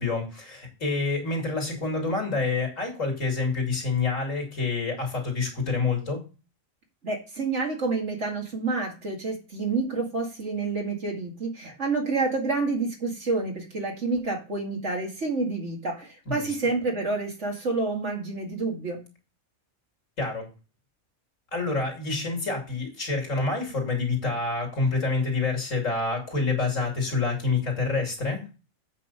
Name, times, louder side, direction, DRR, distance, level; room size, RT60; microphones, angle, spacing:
voice 1, 0.0-6.2 16.3-16.4 20.2-20.5 21.5-28.4, left 3 dB, 65° left, 1 dB, 3.1 m, -27 dB
voice 2, 7.0-19.0, right 3 dB, 55° right, 0 dB, 2.4 m, -28 dB
8.2 x 5.5 x 5.5 m, 0.32 s
omnidirectional pair, 1.4 m